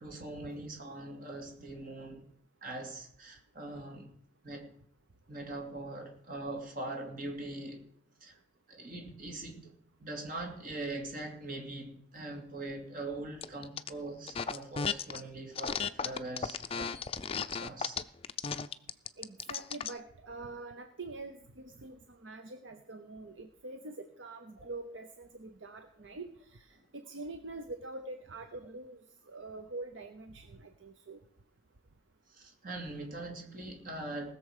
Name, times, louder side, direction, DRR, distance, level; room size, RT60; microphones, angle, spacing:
voice 1, 0.0-2.3 2.6-4.1 4.4-4.7 5.3-7.8 8.2-8.4 8.7-9.7 10.0-17.0 17.6-18.0 24.6-24.7 32.3-34.3, right 2 dB, 45° right, 2 dB, 2.6 m, -42 dB
sound 1, 13.4-13.9 14.3-15.2 15.5-20.0, left 6 dB, 30° left, 0.4 m, -35 dB
voice 2, 19.2-31.2, right 2 dB, 65° right, 7 dB, 0.8 m, -45 dB
19.0 x 6.9 x 4.9 m, 0.66 s
head